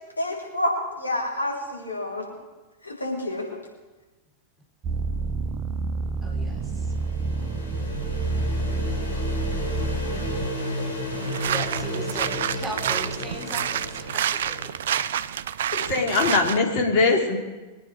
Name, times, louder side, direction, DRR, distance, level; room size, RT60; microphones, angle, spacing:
voice 1, 0.2-2.3 2.8-3.5, left 1 dB, 80° left, -3 dB, 3.9 m, -28 dB
sound 1, 4.8-10.5, right 3 dB, 30° right, 0.8 m, -28 dB
voice 2, 6.2-6.6 11.4-14.7, right 1 dB, 5° right, 0 dB, 3.3 m, -37 dB
sound 2, 6.3-15.1, left 1 dB, 60° left, 4.7 m, -33 dB
sound 3, 11.1-16.6, right 9 dB, 60° right, 0.5 m, -28 dB
voice 3, 15.7-17.4, left 3 dB, 45° left, 1 dB, 2.9 m, -21 dB
22.5 x 9.7 x 5.0 m, 1.2 s
figure-of-eight pair, 90°, 0 cm